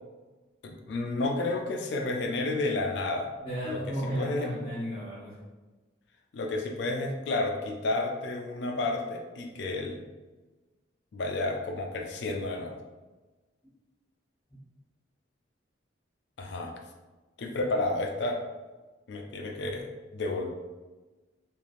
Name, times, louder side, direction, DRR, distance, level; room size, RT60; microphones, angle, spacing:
voice 1, 0.6-3.3 3.6-3.8 4.2-4.5 6.3-10.0 11.1-12.8 16.4-16.7 17.4-18.4 19.1-20.5, left 2 dB, 60° left, 3 dB, 0.4 m, -31 dB
voice 2, 3.4-5.4, equal, 25° left, -11 dB, 1.0 m, -34 dB
3.1 x 2.5 x 2.5 m, 1.2 s
head